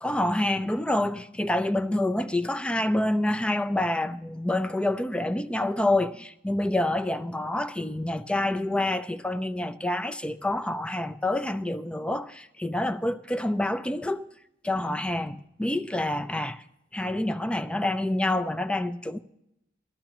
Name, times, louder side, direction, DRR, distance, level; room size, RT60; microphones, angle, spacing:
voice 1, 0.0-14.2 14.6-16.6 16.9-19.2, left 1 dB, 5° left, 0.4 m, -27 dB
19.0 x 13.0 x 3.0 m
head